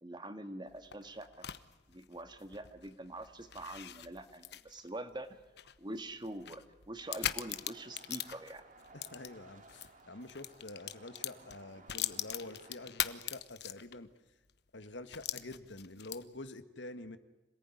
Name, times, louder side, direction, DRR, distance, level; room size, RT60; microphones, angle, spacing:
voice 1, 0.0-1.5 1.9-5.4 5.8-8.6, right 1 dB, 25° right, 9 dB, 1.8 m, -45 dB
sound 1, 0.7-9.9 10.2-14.1 14.5-14.6 15.1-16.4, left 11 dB, 65° left, 1.1 m, -41 dB
sound 2, 7.0-12.9, right 2 dB, 45° right, 2.9 m, -58 dB
voice 2, 8.9-14.1 14.7-17.2, left 2 dB, 85° left, 10 dB, 1.7 m, -47 dB
26.5 x 19.0 x 9.9 m, 1.1 s
head